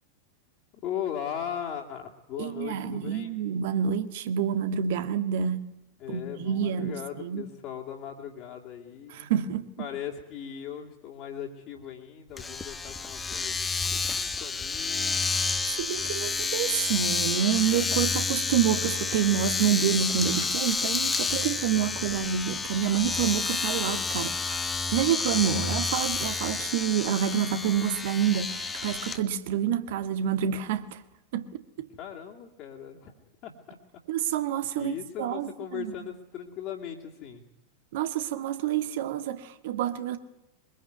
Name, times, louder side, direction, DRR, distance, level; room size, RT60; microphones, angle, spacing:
voice 1, 0.8-3.4 6.0-9.3 9.8-13.6 13.8-15.2 31.9-33.1 33.4-33.8 34.7-37.5, left 9 dB, 40° left, 2.7 m, -38 dB
voice 2, 2.4-5.7 6.1-7.4 9.1-9.9 15.6-24.6 24.9-31.0 31.3-31.6 34.1-35.9 37.9-40.2, right 9 dB, 55° right, 1.8 m, -28 dB
Domestic sounds home sounds, 12.4-29.2, left 4 dB, 15° left, 1.4 m, -30 dB
23.0 x 21.0 x 9.3 m
figure-of-eight pair, 90°, 0 cm